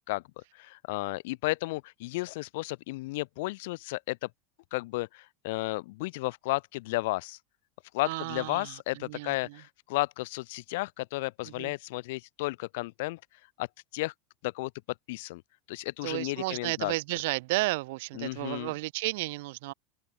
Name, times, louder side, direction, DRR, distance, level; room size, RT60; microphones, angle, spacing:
voice 1, 0.5-4.3 4.7-7.4 7.9-13.2 13.6-13.7 13.9-14.1 14.4-14.7 15.1-15.4 15.7-16.9 18.1-18.7, left 21 dB, 70° left, 0.3 m, -33 dB
voice 2, 8.0-8.8 9.0-9.6 11.6-11.7 16.0-19.7, right 22 dB, 70° right, 0.4 m, -33 dB
supercardioid pair, 135°, 0 cm